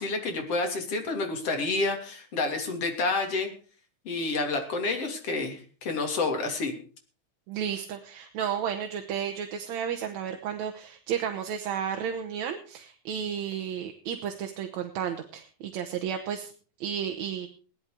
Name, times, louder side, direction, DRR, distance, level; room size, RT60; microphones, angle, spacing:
voice 1, 0.0-3.5 4.1-6.7, left 3 dB, 55° left, 4 dB, 3.9 m, -29 dB
voice 2, 7.5-16.5 16.8-17.5, right 8 dB, 70° right, 4 dB, 2.4 m, -32 dB
17.5 x 11.5 x 5.0 m, 0.39 s
omnidirectional pair, 3.4 m